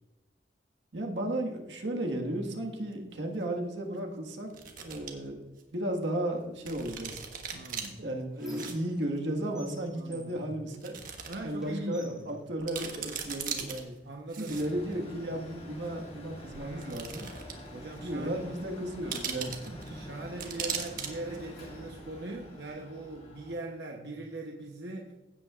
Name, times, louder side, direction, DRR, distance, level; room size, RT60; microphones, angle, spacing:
voice 1, 0.9-4.5 4.8-7.2 8.0-14.0 14.3-17.3 18.0-19.8 20.4-20.5, right 1 dB, 90° right, 1 dB, 1.6 m, -34 dB
sound 1, 2.9-3.0 4.5-5.1 5.6-5.7 6.7-7.9 8.4-8.7 9.0-9.1 10.0-10.1 10.7-11.4 11.7-11.8 12.3-12.4 12.6-13.8 14.3-14.9 15.9-16.0 16.8-17.7 18.0-18.1 19.1-19.9 20.4-21.1 21.3-21.5, right 7 dB, 50° right, 1.3 m, -38 dB
Squeak, 7.5-9.3 9.6-11.2 11.6-13.3 14.1-14.2 14.5-15.6, left 1 dB, 5° right, 1.7 m, -54 dB
voice 2, 7.5-8.0 9.9-10.4 11.3-12.3 14.0-14.6 16.5-17.1 17.7-18.4 19.9-25.1, right 2 dB, 70° right, 1 dB, 0.9 m, -41 dB
Mechanical fan, 14.5-23.6, equal, 35° left, 2.2 m, -47 dB
16.0 x 8.4 x 2.4 m, 1.1 s
head